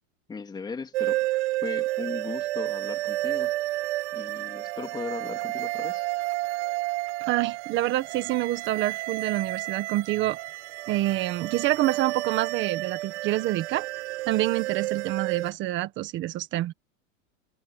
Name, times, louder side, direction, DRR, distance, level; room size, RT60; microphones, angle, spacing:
voice 1, 0.3-1.2 1.6-3.5 4.1-6.0, left 4 dB, 10° left, 2.6 m, -37 dB
sound 1, 0.9-15.5, right 18 dB, 55° right, 4.9 m, -31 dB
voice 2, 7.3-10.4 10.9-13.9 14.3-16.7, right 15 dB, 30° right, 1.6 m, -27 dB
supercardioid pair, 160°, 40 cm